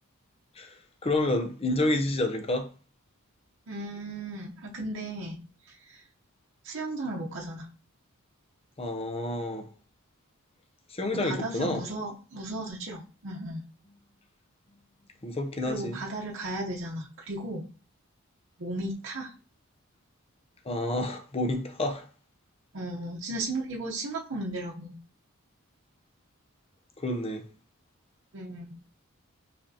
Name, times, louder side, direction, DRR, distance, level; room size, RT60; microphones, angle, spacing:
voice 1, 1.0-2.7 8.8-9.7 10.9-11.8 15.2-16.0 20.7-22.0 27.0-27.4, left 1 dB, 30° left, 0.6 m, -29 dB
voice 2, 3.7-5.4 5.7-6.0 6.6-7.7 11.2-13.6 15.6-17.6 18.6-19.3 22.7-24.9 28.3-28.8, right 2 dB, 60° right, 0.8 m, -35 dB
5.6 x 3.4 x 2.7 m
head